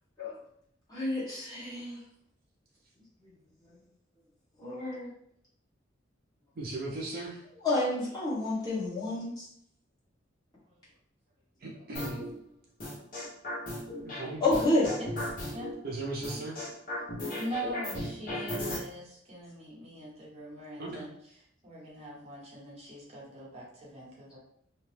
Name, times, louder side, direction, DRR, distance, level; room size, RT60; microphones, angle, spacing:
voice 1, 0.9-2.0 3.2-3.3 3.7-3.8 4.6-5.1 7.6-9.5 14.4-14.9, left 2 dB, 20° left, -9 dB, 1.3 m, -29 dB
voice 2, 6.6-7.4 11.6-12.2 14.0-14.4 15.8-16.6 20.8-21.1, right 2 dB, 50° right, -3 dB, 0.5 m, -37 dB
sound 1, 11.9-12.3 12.8-14.2 14.5-15.7 16.2-18.8, left 1 dB, 45° left, 1.0 m, -35 dB
voice 3, 17.3-24.4, right 1 dB, 35° right, -6 dB, 1.0 m, -42 dB
2.7 x 2.1 x 3.2 m, 0.70 s
head